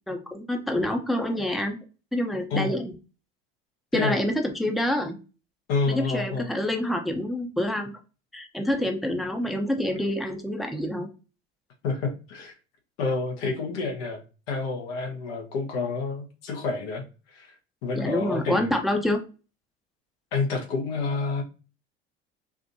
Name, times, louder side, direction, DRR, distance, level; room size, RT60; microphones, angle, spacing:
voice 1, 0.1-1.8 2.1-2.9 3.9-5.2 5.9-7.9 8.3-11.1 17.9-19.2, left 1 dB, ahead, 4 dB, 0.7 m, -27 dB
voice 2, 5.7-6.5 11.8-12.5 13.0-14.2 14.5-17.1 17.3-17.5 17.8-18.7 20.3-21.4, left 4 dB, 70° left, 2 dB, 1.1 m, -28 dB
4.8 x 2.5 x 2.6 m, 0.34 s
hypercardioid pair, 65°, 32 cm